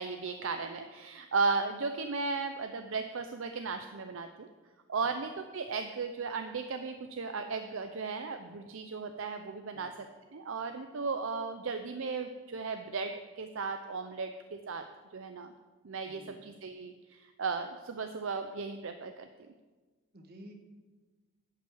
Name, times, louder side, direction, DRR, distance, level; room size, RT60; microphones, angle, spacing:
voice 1, 0.0-4.5 4.9-9.9 10.3-14.8 15.1-15.5 15.8-19.3, right 4 dB, 60° right, 7 dB, 0.5 m, -35 dB
voice 2, 16.0-16.4 20.1-20.5, equal, 45° right, 3 dB, 1.4 m, -52 dB
11.0 x 5.6 x 7.9 m, 1.3 s
head